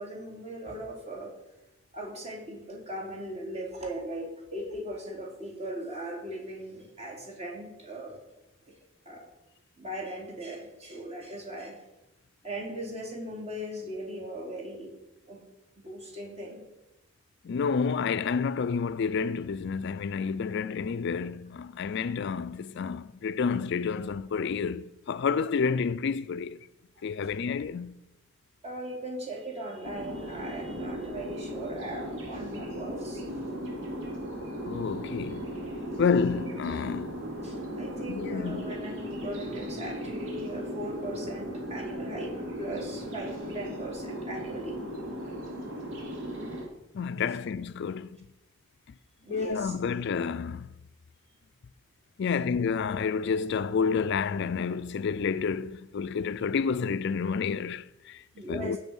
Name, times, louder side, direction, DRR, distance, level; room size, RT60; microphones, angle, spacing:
voice 1, 0.0-1.3 1.9-8.2 8.7-8.8 9.0-9.2 9.8-11.8 12.4-14.9 15.2-15.4 15.8-16.6 28.6-33.2 37.4-44.8 47.3-47.4 49.2-49.7 58.3-58.8, right 1 dB, 35° right, 3.4 m, -38 dB
voice 2, 17.4-26.6 27.0-28.0 34.6-35.5 36.0-37.2 38.1-38.6 46.9-48.2 49.3-50.7 52.2-58.2 58.5-58.8, left 5 dB, 60° left, 0.4 m, -29 dB
sound 1, 29.8-46.6, equal, 75° right, 2.5 m, -37 dB
16.5 x 6.4 x 5.4 m
head